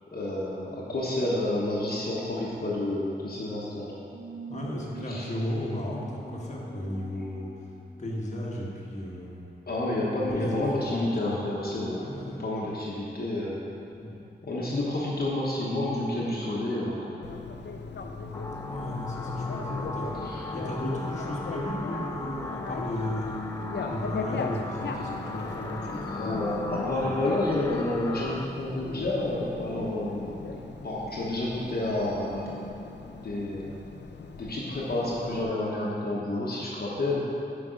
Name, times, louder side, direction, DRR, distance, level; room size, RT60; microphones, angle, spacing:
voice 1, 0.1-4.0 5.1-5.3 9.7-13.6 14.4-17.3 19.5-19.8 20.2-20.4 23.8-23.9 25.0-25.1 26.0-32.9 33.1-33.7 34.4-37.3, left 1 dB, 55° left, -6 dB, 1.2 m, -30 dB
sound 1, 4.1-9.3, right 2 dB, 65° right, 1.5 m, -45 dB
voice 2, 4.5-7.5 8.0-9.5 10.1-11.5 11.9-12.4 13.9-14.2 18.6-20.1 20.5-23.4 23.8-26.5 26.7-27.1, left 1 dB, 40° left, -4 dB, 1.3 m, -35 dB
Bicycle, 17.2-35.4, left 4 dB, 75° left, 0.6 m, -38 dB
sound 2, 18.3-28.5, left 2 dB, 15° left, 0.4 m, -38 dB
8.5 x 5.2 x 5.1 m, 2.7 s
wide cardioid pair, 135°, 18 cm